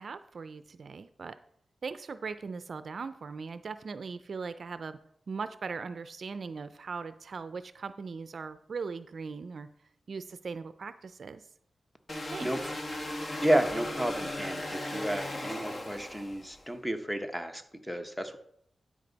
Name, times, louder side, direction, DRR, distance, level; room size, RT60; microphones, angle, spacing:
voice 1, 0.0-1.3 1.8-5.0 5.3-9.7 10.1-11.4 12.3-12.5, right 5 dB, 65° right, 12 dB, 0.4 m, -39 dB
sound 1, 12.1-16.6, left 1 dB, 35° left, 1.2 m, -37 dB
voice 2, 12.4-12.7 13.4-18.4, right 1 dB, 5° left, 6 dB, 1.0 m, -31 dB
12.0 x 5.1 x 4.0 m, 0.69 s
wide cardioid pair, 85°, 0 cm